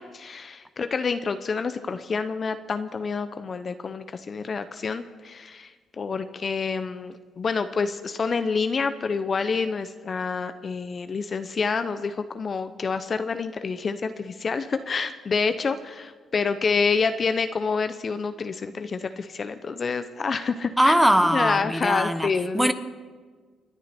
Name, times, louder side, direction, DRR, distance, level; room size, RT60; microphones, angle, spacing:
voice 1, 0.0-20.9 21.2-22.7, left 5 dB, 40° left, 0.8 m, -28 dB
voice 2, 20.8-22.7, equal, 5° right, 1.1 m, -21 dB
29.5 x 10.0 x 4.4 m
cardioid pair, 90°, 0 cm